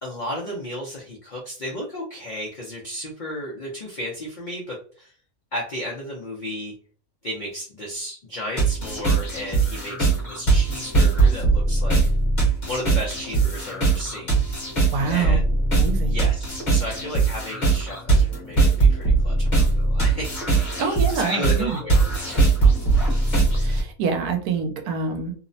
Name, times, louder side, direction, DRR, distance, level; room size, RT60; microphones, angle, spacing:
voice 1, 0.0-5.1 5.5-6.7 7.2-12.0 12.6-14.4 15.1-15.4 16.1-20.4 21.1-22.5, equal, 85° left, -3 dB, 0.4 m, -33 dB
sound 1, 8.6-23.8, right 3 dB, 35° left, 1.0 m, -20 dB
voice 2, 14.9-15.4 15.8-16.2 20.8-21.8 23.5-25.3, right 4 dB, 85° right, 4 dB, 1.1 m, -26 dB
2.8 x 2.0 x 2.6 m, 0.43 s
omnidirectional pair, 1.6 m